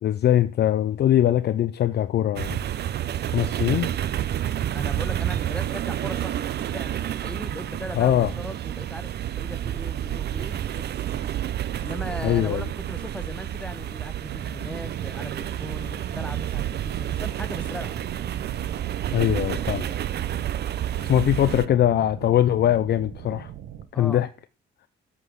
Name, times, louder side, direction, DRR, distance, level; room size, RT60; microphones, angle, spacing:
voice 1, 0.0-2.6 3.3-3.9 8.0-8.3 12.2-12.7 19.1-19.9 21.0-23.5 24.0-24.3, left 11 dB, 55° left, 0.5 m, -21 dB
sound 1, 2.4-21.7, right 11 dB, 55° right, 0.6 m, -29 dB
voice 2, 4.7-10.9 11.7-18.0 19.6-20.0 21.4-21.6 23.9-24.3, left 1 dB, 5° left, 0.9 m, -39 dB
sound 2, 14.3-23.9, right 10 dB, 85° right, 1.0 m, -38 dB
8.3 x 3.8 x 6.2 m
cardioid pair, 90°, 20 cm